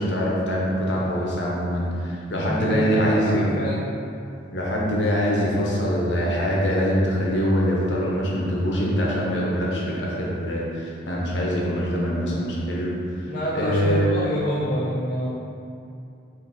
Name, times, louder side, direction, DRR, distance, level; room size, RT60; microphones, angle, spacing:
voice 1, 0.0-3.5 4.5-12.9 13.2-14.2, equal, 70° left, -4 dB, 0.8 m, -24 dB
voice 2, 2.3-3.8 13.3-15.3, equal, 45° left, -7 dB, 0.5 m, -27 dB
4.3 x 2.7 x 4.0 m, 2.6 s
head